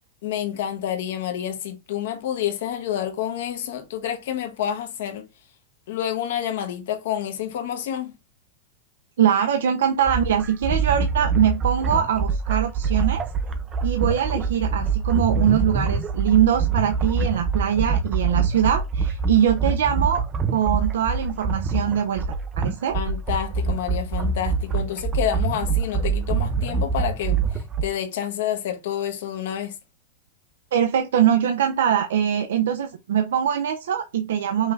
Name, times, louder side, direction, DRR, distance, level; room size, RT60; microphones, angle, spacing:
voice 1, 0.2-5.3 5.9-8.1 22.9-29.7, left 10 dB, 60° left, 0.9 m, -28 dB
voice 2, 9.2-13.2 13.8-20.2 20.5-22.2 22.6-23.0 30.7-34.7, right 9 dB, 90° right, 0.4 m, -22 dB
sound 1, 10.0-27.8, right 5 dB, 15° right, 0.3 m, -25 dB
5.4 x 2.4 x 3.1 m
supercardioid pair, 175°, 0 cm